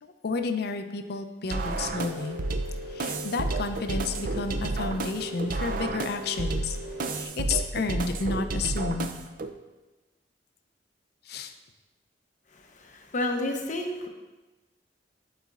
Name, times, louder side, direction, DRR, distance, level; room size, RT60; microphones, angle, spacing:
voice 1, 0.0-2.4 2.9-6.8 7.1-9.1 11.3-11.5, left 4 dB, 60° left, 7 dB, 0.5 m, -31 dB
sound 1, 1.5-9.5, right 3 dB, 50° right, 0.4 m, -31 dB
Rain, 1.6-7.3, equal, 25° right, 1.7 m, -41 dB
voice 2, 12.5-14.1, left 1 dB, 45° left, 2 dB, 0.8 m, -31 dB
11.5 x 4.1 x 2.4 m, 1.1 s
head